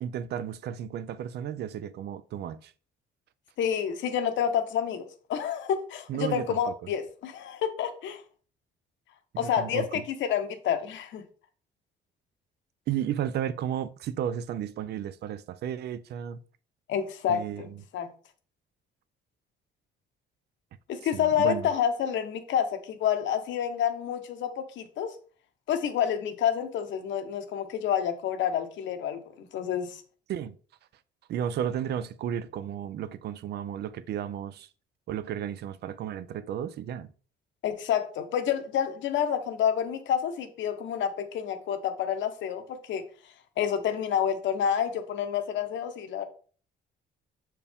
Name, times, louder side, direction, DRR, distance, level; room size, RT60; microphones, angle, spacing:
voice 1, 0.0-2.7 6.1-6.7 9.4-10.0 12.9-16.4 17.3-17.8 21.0-21.7 30.3-30.5 31.3-34.7 35.1-37.1, right 10 dB, 60° right, 0.5 m, -33 dB
voice 2, 3.6-8.2 9.4-11.2 16.9-17.7 17.9-18.1 20.9-25.2 25.7-30.0 37.6-43.0 43.6-46.2, left 9 dB, 75° left, 1.0 m, -28 dB
6.9 x 4.6 x 3.5 m
cardioid pair, 135°, 19 cm